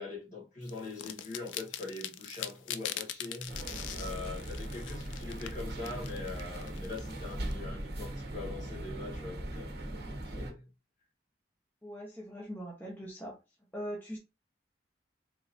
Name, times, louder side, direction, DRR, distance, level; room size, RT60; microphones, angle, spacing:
voice 1, 0.0-3.6 3.9-9.7 10.0-10.7, left 3 dB, 45° left, 2.0 m, -42 dB
sound 1, 0.7-7.5, left 11 dB, 90° left, 0.4 m, -42 dB
sound 2, 3.5-10.5, right 1 dB, 60° right, 1.1 m, -39 dB
voice 2, 11.8-13.4 13.7-14.2, equal, 10° left, 0.9 m, -41 dB
3.7 x 3.2 x 2.7 m
head